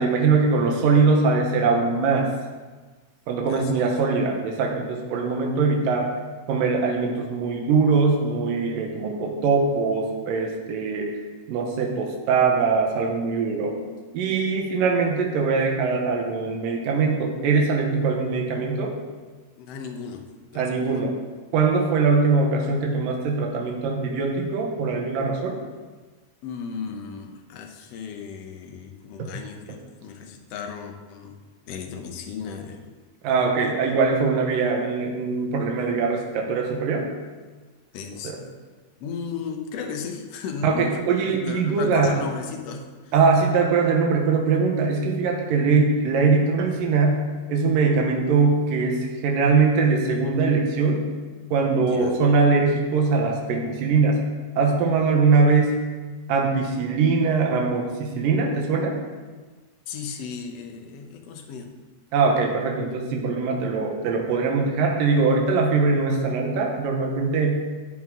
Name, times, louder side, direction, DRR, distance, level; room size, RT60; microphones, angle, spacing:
voice 1, 0.0-2.3 3.3-6.1 6.5-11.1 11.5-13.8 14.1-18.9 20.6-21.2 21.5-25.6 33.2-37.1 38.2-38.4 40.6-42.2 43.1-51.1 51.5-54.3 54.6-55.8 56.3-59.0 62.1-67.6, right 4 dB, 85° right, 1 dB, 2.8 m, -22 dB
voice 2, 3.5-3.9 19.6-20.3 20.5-21.0 26.4-31.3 31.7-32.9 33.4-33.8 37.9-38.5 39.0-41.1 41.3-43.1 51.7-52.2 59.9-61.7, left 6 dB, 65° left, 4 dB, 1.7 m, -35 dB
14.5 x 8.0 x 3.7 m, 1.4 s
omnidirectional pair, 3.8 m